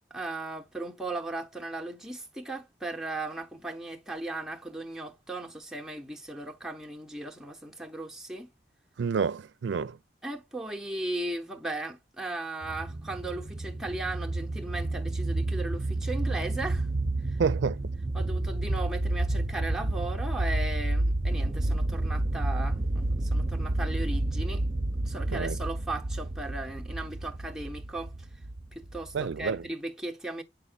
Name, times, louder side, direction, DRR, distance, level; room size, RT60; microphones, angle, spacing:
voice 1, 0.1-8.5 10.2-16.9 17.3-17.4 18.1-24.6 25.0-28.1 28.7-30.4, right 2 dB, 5° right, 0.8 m, -37 dB
voice 2, 9.0-10.0 17.4-17.9 25.3-25.6 29.1-29.6, right 5 dB, 80° right, 0.4 m, -29 dB
sound 1, 12.6-29.6, right 2 dB, 30° right, 0.6 m, -30 dB
7.8 x 5.3 x 2.3 m
head